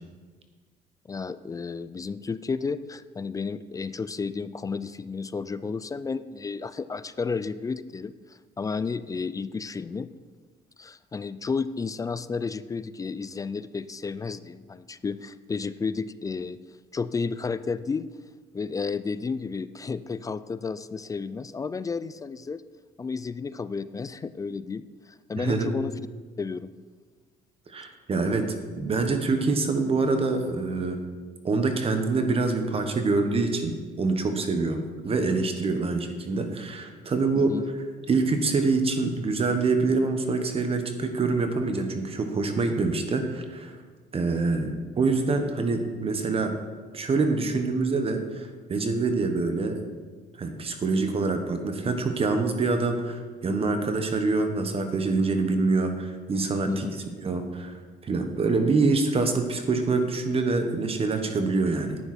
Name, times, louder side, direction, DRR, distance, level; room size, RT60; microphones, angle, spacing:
voice 1, 1.1-10.1 10.8-16.6 16.9-18.1 18.5-22.6 23.0-25.9 26.4-26.7 37.3-37.6 56.7-56.9, left 5 dB, 20° left, 14 dB, 0.3 m, -32 dB
voice 2, 25.4-25.7 27.7-28.5 28.8-31.0 31.4-34.8 35.0-37.5 38.1-43.8 44.1-46.5 46.9-49.8 50.4-56.9 57.2-57.8 58.0-62.0, right 3 dB, 35° right, 6 dB, 1.3 m, -25 dB
10.5 x 9.1 x 4.4 m, 1.5 s
cardioid pair, 110°, 17 cm